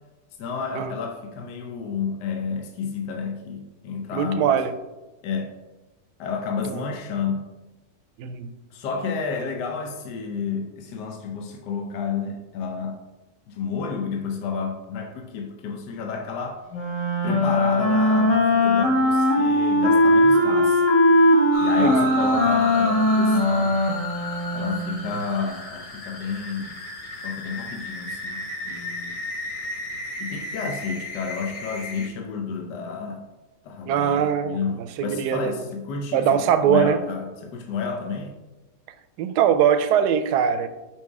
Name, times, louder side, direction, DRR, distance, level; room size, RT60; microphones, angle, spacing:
voice 1, 0.4-4.6 5.2-5.5 6.2-7.5 8.7-13.0 13.5-16.6 17.2-20.8 21.6-23.8 24.5-26.8 27.2-29.2 30.2-33.2 33.6-38.4, left 5 dB, 75° left, 3 dB, 1.3 m, -31 dB
voice 2, 4.1-4.7 6.7-6.8 8.2-8.5 21.8-22.1 33.9-35.6 36.1-37.0 39.2-40.7, right 8 dB, 75° right, 10 dB, 1.1 m, -22 dB
Wind instrument woodwind instrument, 16.7-24.9, left 1 dB, 50° left, 1.4 m, -19 dB
sound 1, 21.5-32.1, left 1 dB, 35° left, 1.0 m, -34 dB
5.9 x 4.5 x 4.7 m, 1.1 s
omnidirectional pair, 1.9 m